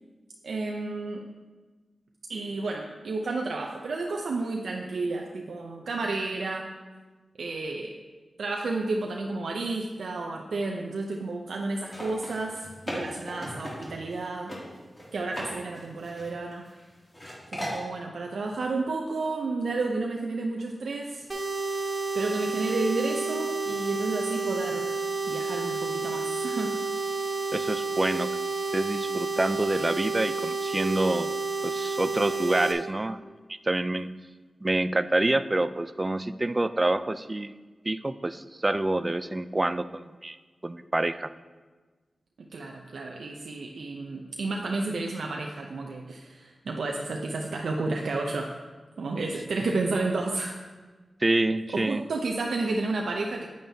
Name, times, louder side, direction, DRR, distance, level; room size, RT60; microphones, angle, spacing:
voice 1, 0.4-1.3 2.3-6.7 7.4-7.9 8.4-14.5 15.1-16.7 17.5-21.3 22.1-24.9 25.3-26.8 42.4-48.6 49.0-50.6 51.7-53.4, right 3 dB, 85° right, 1 dB, 0.5 m, -31 dB
sound 1, 11.8-14.2 14.5-14.6 15.0-15.5 15.7-16.8 17.1-17.8, equal, 30° left, 2.5 m, -37 dB
sound 2, 21.3-32.7, right 4 dB, 40° right, 1.1 m, -30 dB
voice 2, 27.5-28.3 28.7-31.3 31.6-33.2 33.7-34.1 34.6-37.5 37.9-40.4 40.6-41.3 51.2-52.0, right 2 dB, 25° right, 13 dB, 0.3 m, -27 dB
9.0 x 8.6 x 2.7 m, 1.3 s
wide cardioid pair, 80°, 0 cm